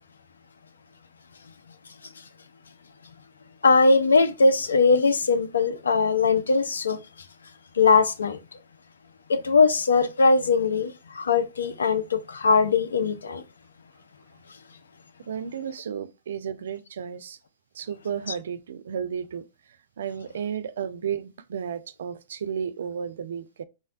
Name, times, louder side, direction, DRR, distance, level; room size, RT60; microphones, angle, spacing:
voice 1, 3.6-7.0 7.8-8.4 9.3-13.4, left 4 dB, 80° left, 0.4 m, -20 dB
voice 2, 15.3-17.4 17.8-19.4 20.0-23.6, right 8 dB, 70° right, 0.3 m, -33 dB
3.9 x 2.1 x 2.4 m
hypercardioid pair, 110°, 0 cm